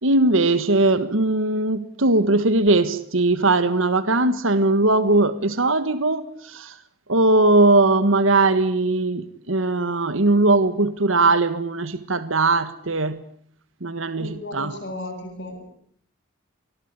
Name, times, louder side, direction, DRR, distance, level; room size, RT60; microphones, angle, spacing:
voice 1, 0.0-6.8 7.1-13.2 13.8-14.8, right 2 dB, 70° right, 12 dB, 1.6 m, -20 dB
voice 2, 14.2-15.7, left 1 dB, 55° left, 1 dB, 7.8 m, -35 dB
26.5 x 21.5 x 9.7 m, 0.64 s
head